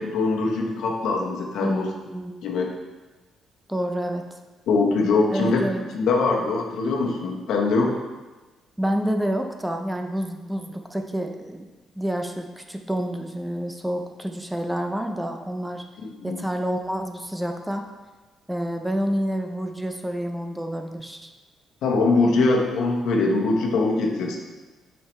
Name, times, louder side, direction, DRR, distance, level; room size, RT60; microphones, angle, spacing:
voice 1, 0.0-1.9 2.4-2.7 4.7-5.6 5.9-8.0 16.0-16.4 21.8-24.4, left 3 dB, 80° left, 0 dB, 1.2 m, -22 dB
voice 2, 1.6-2.4 3.7-4.2 5.3-5.9 8.8-11.6 12.0-15.8 16.2-17.8 18.5-21.3, equal, 5° right, 4 dB, 0.6 m, -28 dB
7.6 x 5.6 x 3.3 m, 1.2 s
cardioid pair, 90°, 0 cm